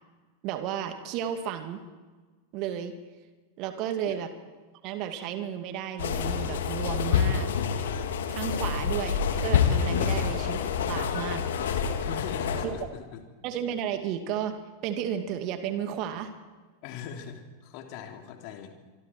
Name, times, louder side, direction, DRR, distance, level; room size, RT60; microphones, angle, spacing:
voice 1, 0.4-1.8 2.5-2.9 3.6-4.3 4.8-7.5 8.3-10.6 10.8-11.4 11.7-11.8 12.6-12.7 13.4-14.6 14.8-16.3, right 9 dB, 40° right, 8 dB, 2.3 m, -33 dB
sound 1, 6.0-12.7, left 7 dB, 60° left, 2.4 m, -27 dB
voice 2, 9.9-10.2 12.0-13.2 16.8-18.7, left 7 dB, 45° left, 4 dB, 3.2 m, -41 dB
25.5 x 25.0 x 4.6 m, 1.3 s
figure-of-eight pair, 90°, 0 cm